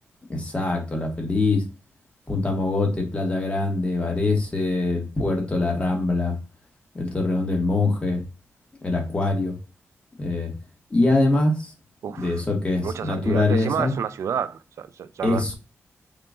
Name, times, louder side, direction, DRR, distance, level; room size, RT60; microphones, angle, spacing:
voice 1, 0.3-1.6 2.3-6.3 6.9-8.2 8.8-9.6 10.2-10.5 10.9-11.7 12.2-13.9 15.2-15.5, left 2 dB, 25° left, 1.2 m, -23 dB
voice 2, 12.0-12.4 12.8-15.5, right 8 dB, 75° right, 0.3 m, -30 dB
3.8 x 2.4 x 3.6 m
wide cardioid pair, 105°, 5 cm